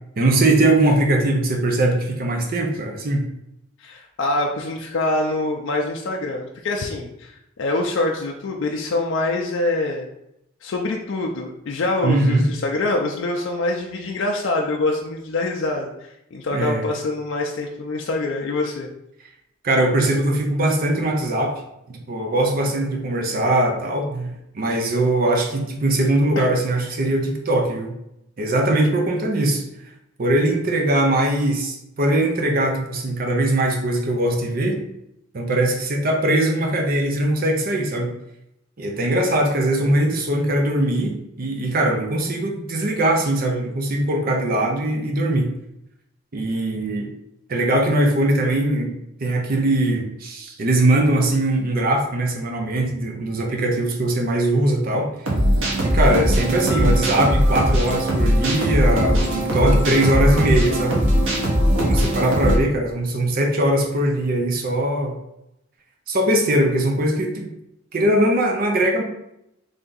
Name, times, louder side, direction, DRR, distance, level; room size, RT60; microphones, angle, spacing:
voice 1, 0.2-3.2 12.0-12.4 16.5-16.9 19.6-21.6 21.9-27.9 28.4-29.6 30.2-34.8 35.3-38.2 38.8-45.5 46.3-47.1 47.5-55.1 55.8-61.0 61.8-65.2 66.1-67.5 67.9-69.0, right 1 dB, 50° right, 2 dB, 0.6 m, -21 dB
voice 2, 3.8-10.1 10.6-18.9 26.4-26.5, left 2 dB, 65° left, 0 dB, 0.4 m, -25 dB
sound 1, 55.3-62.6, equal, 85° right, 1.0 m, -19 dB
3.4 x 2.7 x 3.8 m, 0.82 s
head